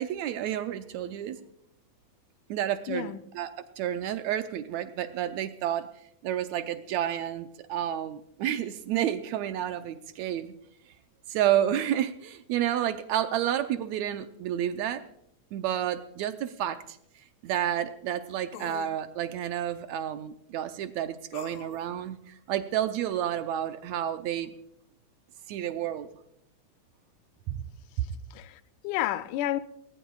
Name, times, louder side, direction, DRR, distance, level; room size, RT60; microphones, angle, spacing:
voice 1, 0.0-1.4 2.5-3.5 3.8-5.9 6.2-10.5 11.3-15.0 15.5-17.0 17.4-24.5 25.5-26.1 27.5-27.7, right 11 dB, 75° right, 1.9 m, -30 dB
voice 2, 2.9-3.2 28.0-29.6, left 13 dB, 90° left, 2.2 m, -31 dB
sound 1, 16.2-16.3 18.5-18.9 21.3-21.9, left 8 dB, 70° left, 2.2 m, -44 dB
19.5 x 19.0 x 2.4 m
omnidirectional pair, 3.5 m